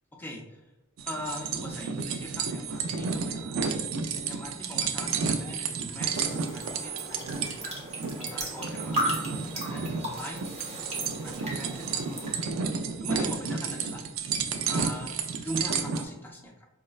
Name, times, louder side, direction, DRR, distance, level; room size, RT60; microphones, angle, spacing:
voice 1, 0.2-0.6 1.0-3.8 4.3-7.5 8.1-10.4 11.2-12.7 13.0-14.0 14.6-16.7, equal, 10° left, -1 dB, 0.4 m, -41 dB
sound 1, 1.0-16.0, right 5 dB, 65° right, 0.3 m, -32 dB
sound 2, 6.0-12.4, equal, 30° right, 0.7 m, -36 dB
4.6 x 2.1 x 2.3 m, 0.97 s
head